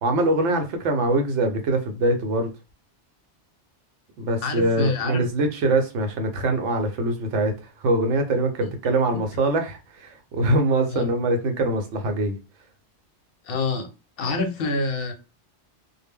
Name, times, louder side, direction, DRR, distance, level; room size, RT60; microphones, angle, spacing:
voice 1, 0.0-2.5 4.2-12.4, right 2 dB, 75° right, 0.9 m, -23 dB
voice 2, 4.4-5.3 10.9-11.1 13.4-13.9 14.2-15.1, left 3 dB, 60° left, 0.7 m, -26 dB
2.1 x 2.0 x 3.5 m
omnidirectional pair, 1.2 m